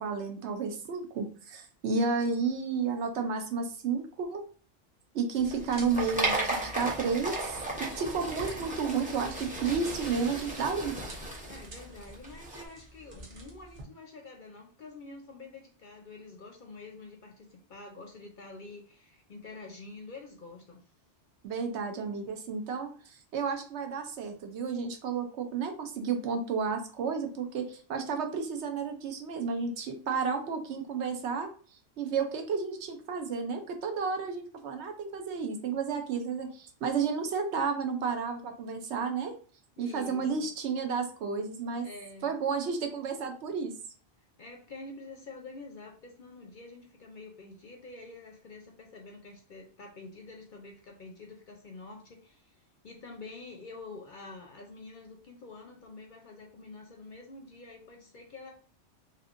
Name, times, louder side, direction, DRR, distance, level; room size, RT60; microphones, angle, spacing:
voice 1, 0.0-4.4 5.1-11.0 21.4-31.5 32.0-39.4 39.8-41.9 42.2-43.7, right 5 dB, 70° right, 4 dB, 0.9 m, -32 dB
sound 1, 5.3-13.8, right 1 dB, 40° right, 0.8 m, -50 dB
sound 2, 5.5-12.6, right 1 dB, 10° right, 0.5 m, -35 dB
voice 2, 11.4-20.8 39.8-40.5 41.8-42.4 44.4-58.5, left 3 dB, 55° left, 2 dB, 0.6 m, -47 dB
3.2 x 2.9 x 2.5 m, 0.41 s
omnidirectional pair, 1.2 m